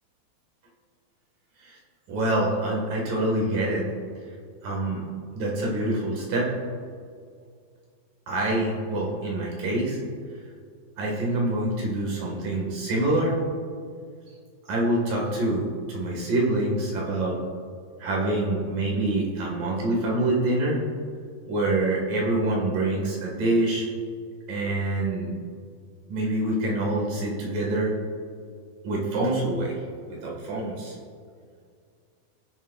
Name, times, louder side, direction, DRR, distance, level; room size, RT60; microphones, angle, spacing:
voice 1, 2.1-3.9 4.6-5.0 5.3-6.5 8.3-10.0 11.0-13.4 14.7-17.4 18.0-20.8 21.5-23.9 24.5-25.4 26.1-27.9 28.8-29.8 30.1-31.0, right 1 dB, 65° right, -2 dB, 3.3 m, -26 dB
19.5 x 7.1 x 2.4 m, 2.1 s
omnidirectional pair, 4.2 m